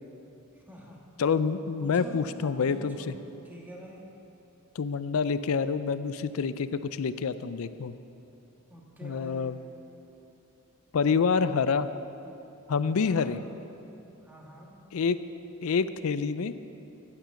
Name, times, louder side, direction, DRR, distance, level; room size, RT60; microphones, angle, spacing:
voice 1, 0.5-1.0 1.8-3.1 3.4-4.0 8.7-9.6 13.0-13.4 14.2-14.7, equal, 10° right, -2 dB, 1.5 m, -46 dB
voice 2, 1.2-3.1 4.8-7.9 9.0-9.6 10.9-11.9 12.7-13.4 14.9-15.2 15.6-16.6, left 5 dB, 65° left, 13 dB, 0.4 m, -27 dB
9.7 x 8.9 x 7.0 m, 2.9 s
head